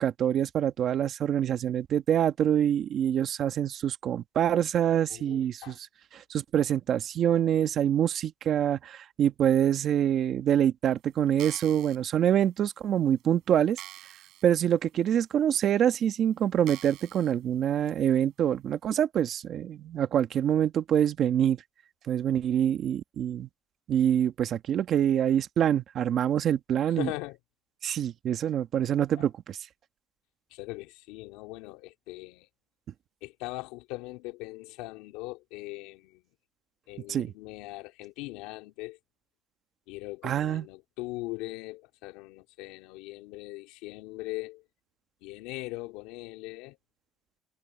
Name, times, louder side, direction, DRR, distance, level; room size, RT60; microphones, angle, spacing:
voice 1, 0.0-5.9 6.1-13.8 14.4-21.6 22.1-23.5 23.9-27.1 27.8-29.6 37.1-37.3 40.2-40.7, right 10 dB, 50° right, 1.6 m, -25 dB
voice 2, 5.1-5.8 27.0-27.4 29.2-29.3 30.5-32.5 33.2-36.2 36.9-39.0 39.9-44.6 45.2-46.8, left 21 dB, 90° left, 3.1 m, -40 dB
sound 1, 11.3-12.0 12.7-12.8 13.2-13.3 13.8-14.4 14.9-15.0 15.7-15.8 16.6-17.3 17.9-18.0, right 15 dB, 65° right, 3.8 m, -45 dB
cardioid pair, 130°, 0 cm